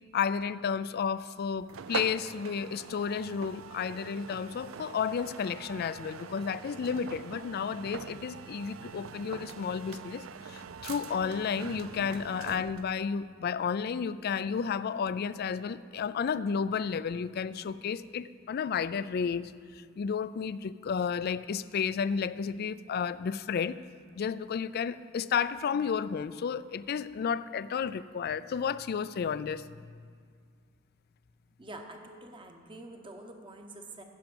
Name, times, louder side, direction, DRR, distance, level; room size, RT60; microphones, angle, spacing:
voice 1, 0.1-19.5 20.0-23.8 24.2-29.6, left 6 dB, 50° left, 16 dB, 0.3 m, -32 dB
sound 1, 1.7-13.0, right 6 dB, 90° right, 0.4 m, -43 dB
voice 2, 31.6-34.0, right 2 dB, 25° right, 4 dB, 1.0 m, -46 dB
15.5 x 5.8 x 6.0 m, 2.1 s
head